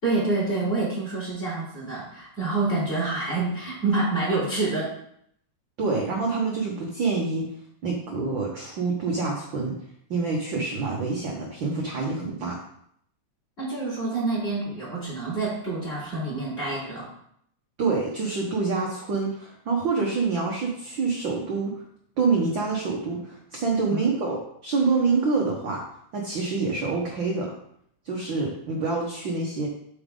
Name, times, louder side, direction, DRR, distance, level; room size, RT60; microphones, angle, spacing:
voice 1, 0.0-4.9 13.6-17.1 23.9-24.0, right 3 dB, 20° left, -6 dB, 3.8 m, -27 dB
voice 2, 5.8-7.5 7.8-9.8 10.1-12.6 17.8-21.8 22.2-25.8 26.1-27.5 28.0-29.7, right 4 dB, 55° right, -2 dB, 1.5 m, -26 dB
8.6 x 6.4 x 3.8 m, 0.69 s
omnidirectional pair, 3.4 m